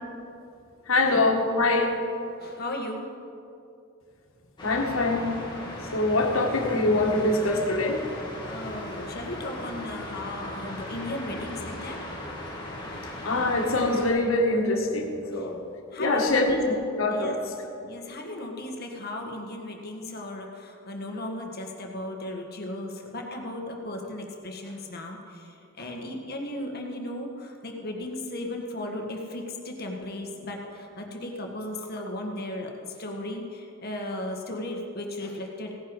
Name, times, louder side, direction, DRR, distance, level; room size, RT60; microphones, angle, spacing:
voice 1, 0.9-1.9 4.6-5.3 5.9-8.0 13.0-15.6 16.0-17.4, left 2 dB, 90° left, 2 dB, 1.8 m, -24 dB
voice 2, 2.4-3.1 8.5-12.0 12.9-13.1 15.2-15.5 15.9-16.6 17.1-17.4 17.8-35.8, left 1 dB, 50° left, 2 dB, 1.7 m, -36 dB
sound 1, 4.6-14.1, left 1 dB, 25° left, 2.5 m, -38 dB
17.0 x 10.5 x 4.9 m, 2.6 s
head